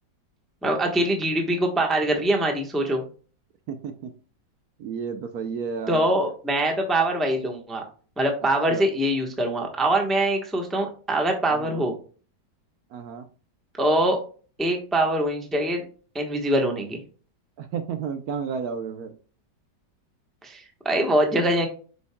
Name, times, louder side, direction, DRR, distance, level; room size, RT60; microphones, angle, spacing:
voice 1, 0.6-3.0 5.9-7.8 8.2-11.9 13.8-14.2 14.6-15.8 16.1-17.0 20.4-21.7, right 1 dB, ahead, 3 dB, 0.8 m, -23 dB
voice 2, 3.7-4.1 4.8-6.1 8.7-8.9 11.5-11.8 12.9-13.3 17.6-19.1, right 6 dB, 70° right, 7 dB, 1.1 m, -32 dB
7.9 x 5.4 x 2.2 m, 0.39 s
omnidirectional pair, 1.9 m